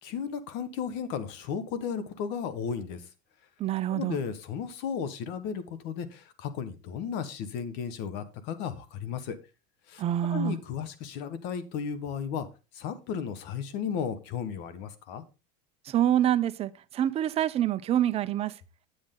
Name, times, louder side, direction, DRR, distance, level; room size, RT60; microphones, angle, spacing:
voice 1, 0.0-3.1 3.9-9.4 9.9-10.0 10.3-12.5 12.7-15.2, left 7 dB, 55° left, 1.4 m, -34 dB
voice 2, 3.6-4.2 10.0-10.6 15.8-18.6, right 11 dB, 30° right, 0.6 m, -26 dB
8.5 x 8.0 x 3.7 m
supercardioid pair, 135°, 21 cm